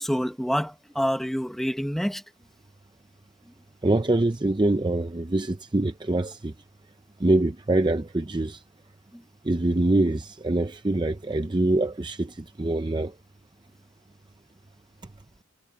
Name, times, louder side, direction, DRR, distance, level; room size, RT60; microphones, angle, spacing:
voice 1, 0.0-2.2 9.1-9.2, equal, ahead, 1.4 m, -27 dB
voice 2, 3.8-6.5 7.2-8.6 9.4-13.1, right 2 dB, 20° right, 0.5 m, -24 dB
head